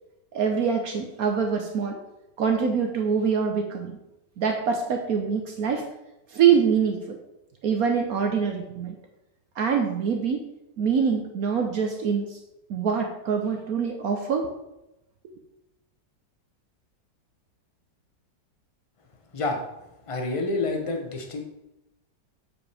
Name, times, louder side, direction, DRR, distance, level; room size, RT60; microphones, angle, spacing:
voice 1, 0.3-2.0 2.4-4.0 4.4-5.8 6.3-7.2 7.6-8.9 9.6-10.5 10.8-12.4 12.7-14.5, right 6 dB, 60° right, 4 dB, 1.1 m, -24 dB
voice 2, 20.1-21.4, left 3 dB, 25° left, 3 dB, 0.7 m, -28 dB
7.8 x 7.2 x 3.4 m, 0.92 s
omnidirectional pair, 2.0 m